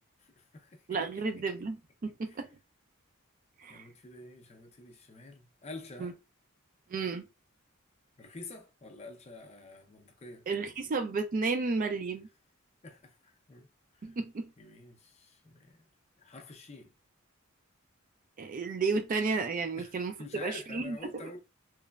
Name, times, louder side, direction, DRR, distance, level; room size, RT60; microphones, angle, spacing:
voice 1, 0.4-0.8 1.1-1.2 2.2-2.4 3.7-6.2 8.2-10.4 12.8-13.7 14.0-14.2 14.6-15.8 16.2-16.9 19.8-21.4, left 2 dB, 30° left, 0.5 m, -48 dB
voice 2, 0.9-2.5 3.6-3.8 6.0-6.1 6.9-7.2 10.5-12.3 14.0-14.5 18.4-21.3, right 4 dB, 40° right, 0.3 m, -32 dB
3.1 x 2.1 x 2.2 m
head